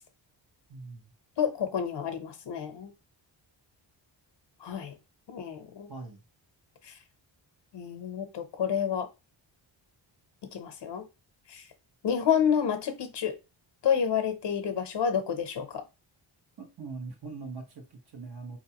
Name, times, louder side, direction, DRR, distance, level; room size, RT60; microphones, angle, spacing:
voice 1, 0.7-1.1 5.9-6.2 16.6-18.6, right 4 dB, 55° right, 1.3 m, -42 dB
voice 2, 1.4-2.9 4.6-4.9 5.3-5.9 6.8-6.9 7.7-9.1 10.5-11.1 11.5-11.6 12.0-13.4 13.8-15.8, left 7 dB, 60° left, 0.8 m, -29 dB
4.6 x 2.9 x 2.8 m
wide cardioid pair, 155°, 47 cm